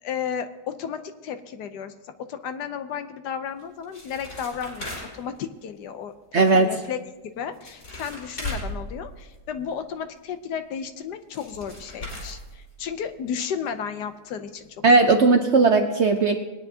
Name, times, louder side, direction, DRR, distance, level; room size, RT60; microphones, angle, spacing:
voice 1, 0.0-7.0 7.4-15.1, left 7 dB, 75° left, 9 dB, 1.3 m, -33 dB
sound 1, 3.6-5.4 7.2-7.3 7.5-9.7 11.0-11.1 11.3-13.0 13.4-13.5 13.7-13.8 14.3-14.4 14.6-14.7, left 1 dB, 50° left, 4.1 m, -37 dB
voice 2, 6.3-6.7 14.8-16.4, right 3 dB, 55° right, 5 dB, 0.8 m, -17 dB
20.5 x 9.7 x 2.8 m, 1.1 s
omnidirectional pair, 1.9 m